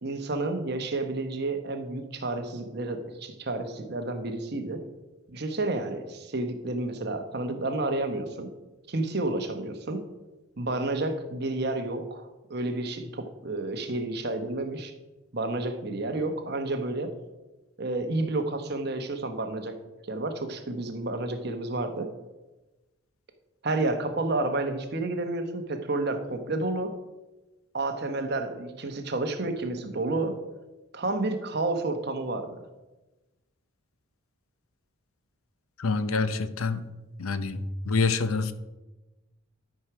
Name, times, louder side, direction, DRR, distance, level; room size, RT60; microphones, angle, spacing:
voice 1, 0.0-4.8 5.3-8.5 8.9-10.0 10.6-14.9 15.3-17.1 17.8-19.8 20.1-22.1 23.6-26.9 27.7-30.3 30.9-32.6, right 2 dB, 50° right, 6 dB, 1.0 m, -30 dB
voice 2, 35.8-36.8 37.2-38.5, left 4 dB, 90° left, 12 dB, 0.7 m, -27 dB
12.0 x 4.8 x 5.9 m, 1.1 s
head